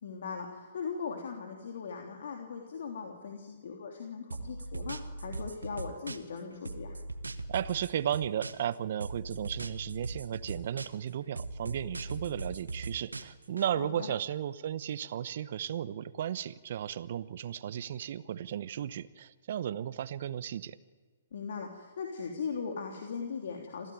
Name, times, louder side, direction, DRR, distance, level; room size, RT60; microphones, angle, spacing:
voice 1, 0.0-7.0 13.8-13.9 21.3-23.9, left 5 dB, 60° left, 2 dB, 3.2 m, -39 dB
sound 1, 4.3-6.4 6.7-8.7 9.0-11.1 11.4-13.7, right 2 dB, 85° right, 1.5 m, -39 dB
voice 2, 7.5-20.8, right 10 dB, 55° right, 16 dB, 1.0 m, -35 dB
26.5 x 16.0 x 9.5 m, 1.5 s
figure-of-eight pair, 130°, 0 cm